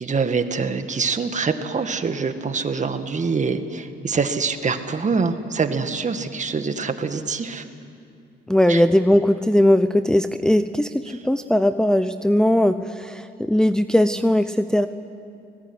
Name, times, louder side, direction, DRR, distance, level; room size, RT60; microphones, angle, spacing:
voice 1, 0.0-7.6 8.7-8.8 11.1-11.2, right 5 dB, 35° right, 8 dB, 1.9 m, -25 dB
voice 2, 8.5-14.9, left 1 dB, 5° left, 9 dB, 0.7 m, -19 dB
30.0 x 19.5 x 9.8 m, 2.5 s
cardioid pair, 90°, 20 cm